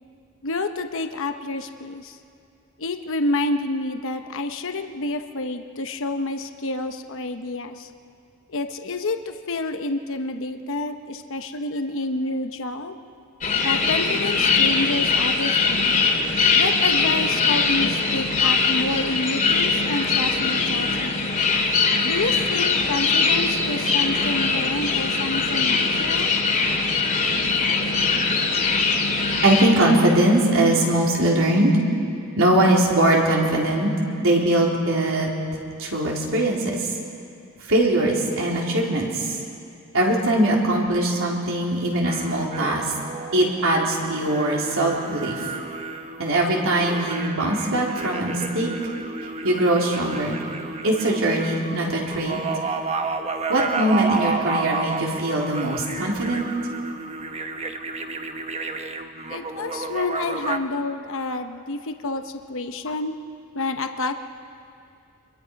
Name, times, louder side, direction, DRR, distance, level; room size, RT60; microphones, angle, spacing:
voice 1, 0.4-2.2 2.8-7.9 8.5-13.0 13.6-16.0 16.5-21.3 22.0-26.3 59.3-63.1 63.5-64.1, left 2 dB, 60° left, 6 dB, 1.0 m, -28 dB
sound 1, 13.4-29.7, left 4 dB, 40° left, 2.5 m, -21 dB
voice 2, 29.4-31.7 32.4-33.9 34.2-35.3 35.8-36.9 37.7-39.3 39.9-42.9 43.3-45.4 46.2-48.7 49.4-50.4 50.8-52.4 53.5-56.5, right 1 dB, 65° right, -2 dB, 3.7 m, -21 dB
sound 2, 42.0-60.6, right 3 dB, 30° right, 1.0 m, -31 dB
28.0 x 22.5 x 5.3 m, 2.4 s
head